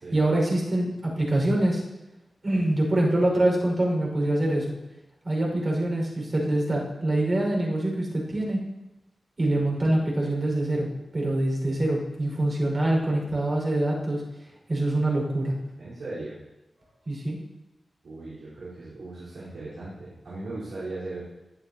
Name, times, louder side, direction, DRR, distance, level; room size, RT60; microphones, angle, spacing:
voice 1, 0.1-1.8 2.4-4.7 5.2-8.6 9.4-10.9 11.1-14.2 14.7-15.5 17.1-17.4, right 1 dB, 40° right, -3 dB, 5.7 m, -25 dB
voice 2, 15.8-16.4 16.8-16.9 18.0-21.2, right 2 dB, 85° right, -11 dB, 4.6 m, -38 dB
18.0 x 12.5 x 3.0 m, 0.97 s
wide cardioid pair, 120°, 0 cm